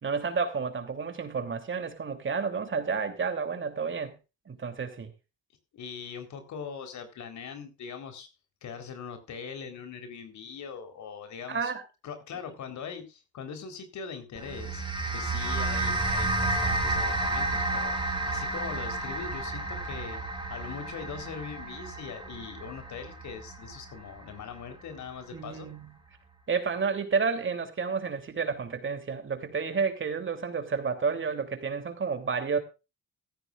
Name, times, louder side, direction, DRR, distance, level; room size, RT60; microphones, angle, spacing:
voice 1, 0.0-4.1 4.5-5.1 8.8-8.9 11.5-11.8 25.3-26.0 26.5-32.6, right 5 dB, 40° right, 3.0 m, -30 dB
voice 2, 5.7-8.3 8.6-11.7 12.0-14.8 15.1-20.2 20.5-25.7, left 6 dB, 70° left, 3.9 m, -41 dB
sound 1, 14.4-24.9, right 2 dB, 15° right, 5.3 m, -31 dB
15.0 x 14.5 x 2.4 m
cardioid pair, 90°, 30 cm